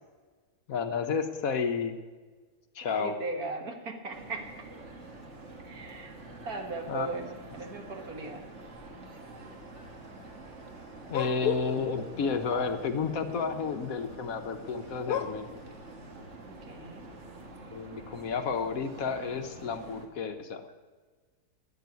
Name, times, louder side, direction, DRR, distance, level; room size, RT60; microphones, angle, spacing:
voice 1, 0.7-2.0 2.7-3.2 6.9-7.3 11.1-15.6 17.7-20.7, left 5 dB, 60° left, 7 dB, 1.3 m, -31 dB
voice 2, 3.0-4.5 5.6-6.1 6.5-8.5 16.5-17.2, right 3 dB, 65° right, 4 dB, 2.0 m, -38 dB
sound 1, 4.1-20.1, right 2 dB, 50° right, 1.8 m, -47 dB
sound 2, 11.1-12.3 15.0-15.5, left 9 dB, 90° left, 1.3 m, -33 dB
12.5 x 8.5 x 9.5 m, 1.4 s
omnidirectional pair, 1.7 m